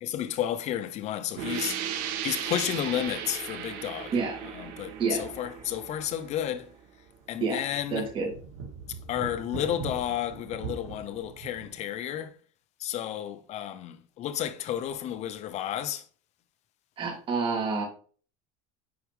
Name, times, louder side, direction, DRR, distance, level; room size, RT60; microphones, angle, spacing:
voice 1, 0.0-4.1 4.5-6.7 7.3-8.0 9.1-12.3 12.8-16.0, left 11 dB, 45° left, 0.9 m, -32 dB
sound 1, 1.4-6.8, right 9 dB, 65° right, 1.5 m, -36 dB
sound 2, 3.1-3.2 3.6-3.7 4.6-6.0 6.4-6.5 7.0-11.8, right 5 dB, 85° right, 2.5 m, -43 dB
voice 2, 7.9-8.3 17.0-17.8, right 4 dB, 35° right, 3.5 m, -28 dB
9.7 x 4.8 x 3.6 m
cardioid pair, 140°, 16 cm